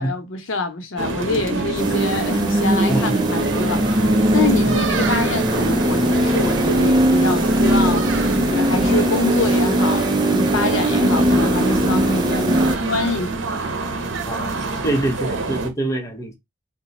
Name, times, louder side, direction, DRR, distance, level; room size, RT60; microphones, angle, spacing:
voice 1, 0.0-8.1 8.3-12.6 12.9-13.3, left 2 dB, 75° left, 0.8 m, -25 dB
sound 1, 1.0-15.7, right 3 dB, 70° right, 0.8 m, -27 dB
sound 2, 1.8-12.8, right 1 dB, 20° right, 0.4 m, -19 dB
voice 2, 2.9-3.2 4.6-4.7 14.3-16.3, right 1 dB, 15° left, 0.7 m, -25 dB
2.9 x 2.1 x 4.0 m
head